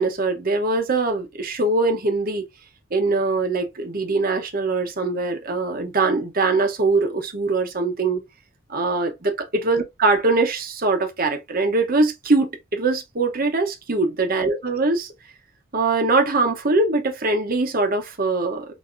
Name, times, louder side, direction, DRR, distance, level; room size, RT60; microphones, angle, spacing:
voice 1, 0.0-2.5 2.9-8.2 8.7-15.1 15.7-18.7, right 3 dB, 45° right, 0.9 m, -22 dB
6.2 x 2.8 x 2.5 m
head